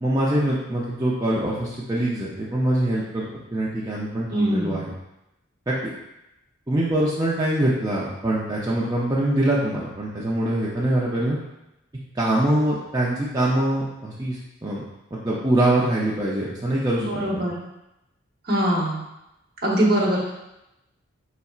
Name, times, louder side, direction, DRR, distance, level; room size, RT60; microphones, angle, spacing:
voice 1, 0.0-3.2 3.5-4.9 5.7-5.9 6.7-11.4 12.1-14.8 15.1-17.1 17.3-17.5, right 1 dB, 20° right, -6 dB, 0.5 m, -23 dB
voice 2, 4.3-4.8 17.0-17.6 18.5-19.0 19.6-20.3, right 1 dB, 50° right, -3 dB, 1.0 m, -22 dB
5.4 x 4.1 x 2.4 m, 0.91 s
head